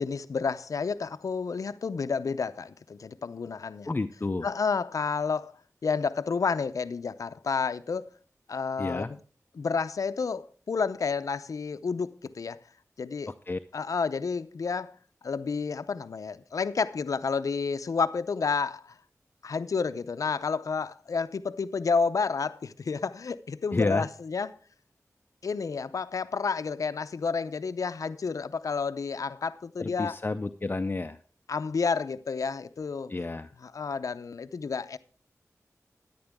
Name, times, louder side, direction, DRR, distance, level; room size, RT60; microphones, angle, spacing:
voice 1, 0.0-3.9 4.4-5.5 5.8-8.1 8.5-9.2 9.6-12.6 13.0-13.3 13.7-15.0 15.2-19.0 19.4-24.5 25.4-30.2 31.5-33.1 33.6-35.0, left 5 dB, 80° left, 0.6 m, -30 dB
voice 2, 3.9-4.5 8.8-9.1 13.3-13.6 23.7-24.1 29.8-31.2 33.1-33.5, left 3 dB, 35° left, 0.5 m, -30 dB
13.0 x 10.5 x 3.5 m
wide cardioid pair, 60°, 6 cm